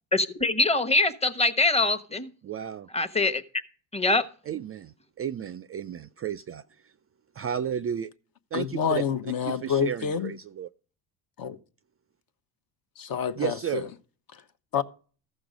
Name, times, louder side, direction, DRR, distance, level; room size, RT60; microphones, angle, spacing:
voice 1, 0.1-2.3 2.9-3.4 3.9-4.2, left 2 dB, 15° left, 1.1 m, -23 dB
voice 2, 2.4-2.9 4.5-6.6 7.4-8.1 8.5-9.0 9.4-10.7 13.4-13.9, right 9 dB, 30° right, 0.4 m, -33 dB
voice 3, 8.5-10.3 11.4-11.6 13.0-13.8 14.7-14.8, left 8 dB, 45° left, 1.0 m, -28 dB
14.5 x 6.1 x 5.1 m
supercardioid pair, 80°, 48 cm